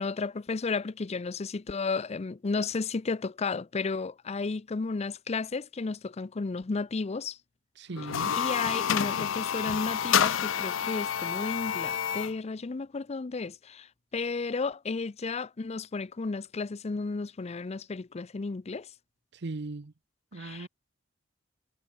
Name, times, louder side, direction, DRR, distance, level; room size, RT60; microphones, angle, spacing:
voice 1, 0.0-7.4 8.4-13.9 14.1-18.9 20.4-20.7, left 4 dB, 35° left, 0.5 m, -33 dB
voice 2, 7.8-8.4 19.3-19.9 20.3-20.7, right 3 dB, 60° right, 0.8 m, -38 dB
sound 1, 8.0-12.4, left 8 dB, 90° left, 0.5 m, -29 dB
head